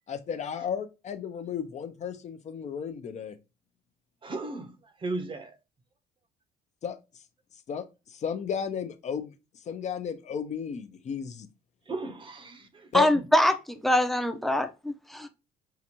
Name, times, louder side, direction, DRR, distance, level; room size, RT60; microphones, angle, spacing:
voice 1, 0.1-3.4 6.8-7.0 7.7-7.8 8.1-9.3 9.7-11.5 12.9-13.1, left 7 dB, 45° left, 0.6 m, -33 dB
voice 2, 4.2-5.5 11.9-12.9, right 3 dB, 30° right, 0.8 m, -36 dB
voice 3, 12.9-15.3, left 1 dB, ahead, 0.6 m, -24 dB
5.7 x 2.5 x 2.9 m
cardioid pair, 110°, 17 cm